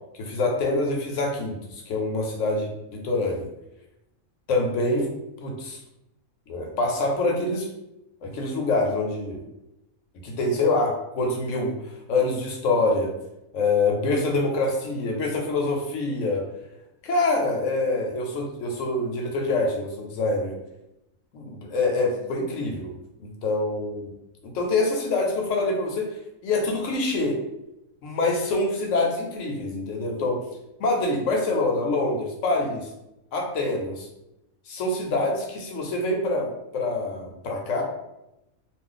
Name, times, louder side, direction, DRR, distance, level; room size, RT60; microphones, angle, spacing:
voice 1, 0.1-3.5 4.5-5.1 5.4-5.8 6.5-7.7 8.2-9.4 10.2-13.1 13.5-16.4 17.0-20.5 21.3-22.9 23.2-24.1 24.4-26.1 26.4-27.4 28.0-30.4 30.8-32.9 33.3-34.1 34.7-37.8, left 2 dB, 70° left, 1 dB, 1.0 m, -25 dB
2.4 x 2.4 x 3.8 m, 0.89 s
omnidirectional pair, 1.4 m